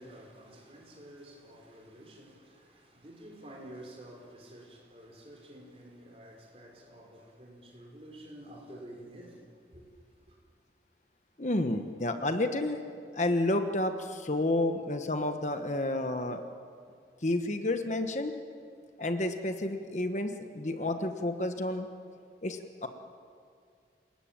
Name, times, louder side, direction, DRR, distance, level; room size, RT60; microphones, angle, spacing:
voice 1, 0.0-9.4 9.7-9.8 10.3-10.4, right 1 dB, 35° right, 5.1 m, -50 dB
voice 2, 11.4-12.8 13.1-16.4 17.2-18.4 19.0-21.9 22.4-22.9, left 1 dB, 40° left, 1.3 m, -30 dB
29.0 x 19.5 x 9.0 m
head